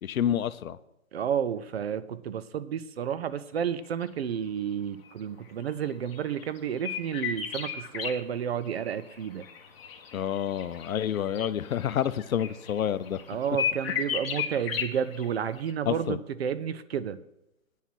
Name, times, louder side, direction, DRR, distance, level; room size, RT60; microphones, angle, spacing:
voice 1, 0.0-0.8 10.1-13.2 15.9-16.2, left 9 dB, 85° left, 16 dB, 0.7 m, -28 dB
voice 2, 1.1-9.4 13.3-17.2, right 8 dB, 50° right, 15 dB, 0.6 m, -31 dB
sound 1, 5.7-8.1 8.8-15.2 15.6-15.7, left 8 dB, 45° left, 1.5 m, -34 dB
9.2 x 7.4 x 6.0 m, 0.87 s
hypercardioid pair, 155°, 41 cm